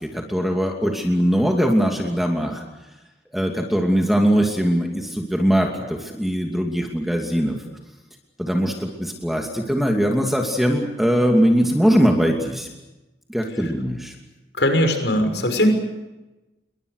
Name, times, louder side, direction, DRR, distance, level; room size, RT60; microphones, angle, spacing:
voice 1, 0.0-2.6 3.3-7.6 8.4-12.7 13.3-14.1, equal, ahead, 1 dB, 2.7 m, -21 dB
voice 2, 14.5-15.7, left 1 dB, 85° left, 6 dB, 6.1 m, -20 dB
29.0 x 23.0 x 6.7 m, 1.0 s
head